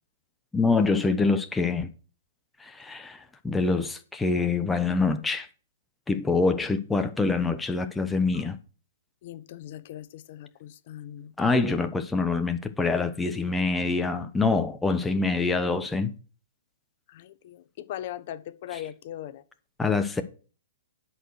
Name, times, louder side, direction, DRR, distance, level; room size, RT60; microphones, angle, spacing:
voice 1, 0.5-1.9 2.6-5.5 6.1-8.6 11.4-16.1 18.7-18.8 19.8-20.2, left 3 dB, 10° left, 0.8 m, -25 dB
voice 2, 9.2-11.3 17.1-19.4, left 12 dB, 50° left, 0.8 m, -39 dB
11.0 x 4.6 x 6.3 m
hypercardioid pair, 135°, 0 cm